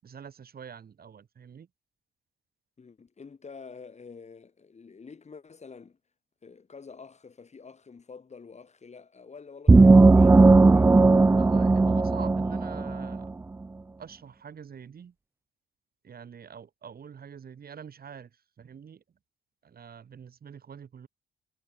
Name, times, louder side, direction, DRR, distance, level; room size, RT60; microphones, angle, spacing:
voice 1, 0.0-1.7 11.4-13.3 14.0-15.1 16.0-19.0 19.6-21.1, right 7 dB, 50° right, 5.2 m, -45 dB
voice 2, 2.8-6.0 6.4-11.2, left 5 dB, 35° left, 3.6 m, -48 dB
sound 1, 9.7-13.2, right 3 dB, 10° right, 0.3 m, -17 dB
cardioid pair, 90°, 20 cm